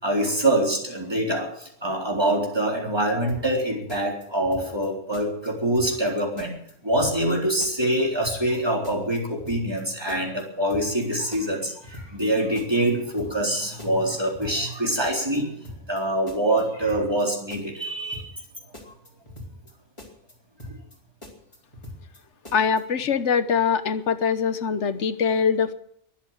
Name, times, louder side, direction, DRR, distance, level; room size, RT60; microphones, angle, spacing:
voice 1, 0.0-6.6 6.8-15.5 15.9-18.3 18.8-18.9 20.7-20.8, right 1 dB, 20° right, -1 dB, 4.0 m, -25 dB
sound 1, 3.3-3.6 3.9-4.9 5.1-5.5 5.7-6.1 6.4-7.3 7.6-8.0 8.2-8.6 8.8-9.8 10.1-10.4 10.7-11.1 11.3-12.3 12.5-12.9 13.2-13.5 13.8-14.8 15.0-15.4 15.6-16.0 16.3-17.2 17.5-17.9 18.1-18.5 18.7-19.7 20.0-20.3 20.6-21.0 21.2-22.2 22.4-22.8, left 1 dB, 25° left, 3.9 m, -42 dB
voice 2, 22.5-25.7, left 6 dB, 70° left, 12 dB, 1.3 m, -23 dB
22.5 x 8.4 x 7.5 m, 0.71 s
omnidirectional pair, 1.2 m